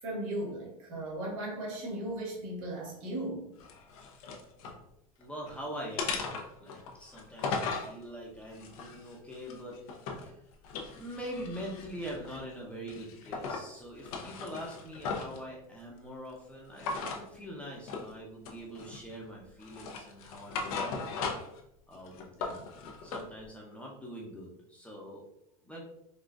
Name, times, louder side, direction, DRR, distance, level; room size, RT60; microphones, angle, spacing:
voice 1, 0.0-3.4 4.6-4.7, right 1 dB, 75° right, -3 dB, 1.4 m, -37 dB
sound 1, 3.6-4.8 5.2-5.6 6.0-7.9 8.5-10.3 10.6-12.5 12.9-13.7 14.0-15.4 16.8-17.2 17.9-18.1 18.4-19.2 19.6-21.6 21.9-23.3, left 4 dB, 75° left, 0.6 m, -37 dB
voice 2, 5.2-6.3 6.6-9.8 10.2-10.4 10.9-21.1 21.9-22.6 23.0-25.2 25.6-25.8, equal, 5° left, -3 dB, 0.7 m, -43 dB
4.0 x 2.4 x 2.3 m, 0.78 s
supercardioid pair, 110°, 18 cm